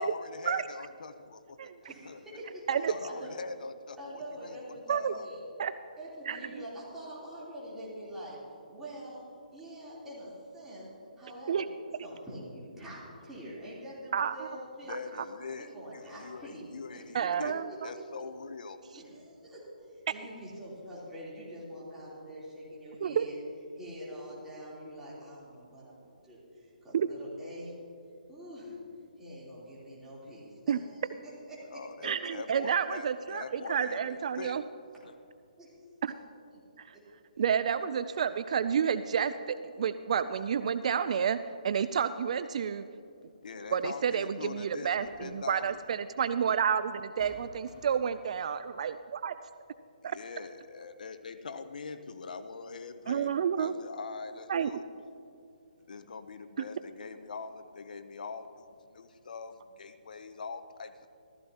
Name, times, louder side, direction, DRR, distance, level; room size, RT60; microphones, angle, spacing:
voice 1, 0.0-1.7 2.1-2.2 2.7-5.3 14.9-18.8 31.7-34.6 35.0-35.1 43.4-45.8 50.0-54.8 55.9-61.1, left 4 dB, 70° left, 10 dB, 0.7 m, -43 dB
voice 2, 1.8-3.3 4.0-5.4 6.0-8.4 8.7-9.2 9.5-10.9 11.2-15.0 15.5-16.7 16.9-17.3 17.7-18.0 18.9-23.3 23.7-27.7 28.3-28.8 29.2-32.3 35.6-35.7 36.0-36.1 36.9-37.0 37.3-37.4 38.1-38.2, equal, 5° right, -9 dB, 3.4 m, -45 dB
voice 3, 6.3-6.6 11.5-11.7 14.1-14.5 17.1-17.9 23.0-23.2 26.9-27.1 30.7-30.8 32.0-34.6 36.0-36.1 36.8-37.0 37.4-42.8 43.7-48.9 49.2-49.3 53.1-53.7 54.5-54.7, right 7 dB, 50° right, 13 dB, 0.3 m, -30 dB
sound 1, 43.6-43.7 44.7-45.5 46.5-46.6 47.2-48.2, equal, 30° left, 2.6 m, -53 dB
15.0 x 15.0 x 2.9 m, 2.6 s
hypercardioid pair, 155°, 5 cm